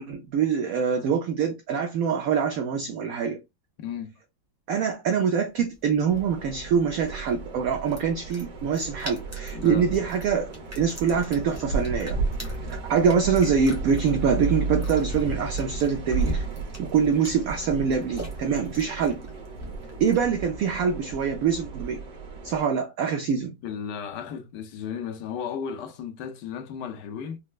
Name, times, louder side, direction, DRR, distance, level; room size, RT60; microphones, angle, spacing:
voice 1, 0.0-3.4 4.7-16.4 16.8-19.2 20.0-22.0 22.4-23.5, right 6 dB, 80° right, 0.7 m, -25 dB
voice 2, 3.8-4.1 9.5-10.0 23.6-27.4, left 7 dB, 75° left, 1.2 m, -34 dB
sound 1, 5.6-20.4, equal, 15° right, 0.5 m, -47 dB
sound 2, 6.1-22.6, right 3 dB, 55° right, 1.3 m, -33 dB
4.2 x 2.0 x 2.3 m
omnidirectional pair, 2.0 m